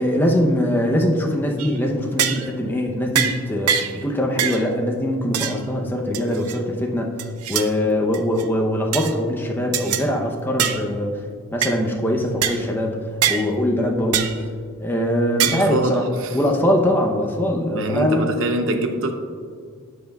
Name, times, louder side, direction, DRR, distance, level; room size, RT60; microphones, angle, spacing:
voice 1, 0.0-7.1 7.5-11.1 11.5-12.9 13.3-14.3 14.8-16.0 16.3-18.3, left 1 dB, 10° left, 0 dB, 0.7 m, -22 dB
sound 1, 1.6-1.8 2.2-2.5 3.1-3.4 3.7-4.0 4.4-4.6 5.3-5.6 6.1-6.6 7.2-7.7 8.1-8.4 8.9-9.1 9.7-10.0 10.6-10.8 11.6-11.7 12.4-12.6 13.2-13.4 14.1-14.4 15.4-15.7, right 9 dB, 90° right, 0.5 m, -23 dB
voice 2, 15.4-16.4 17.7-19.1, right 2 dB, 60° right, 6 dB, 0.8 m, -24 dB
12.0 x 7.8 x 2.3 m, 2.1 s
head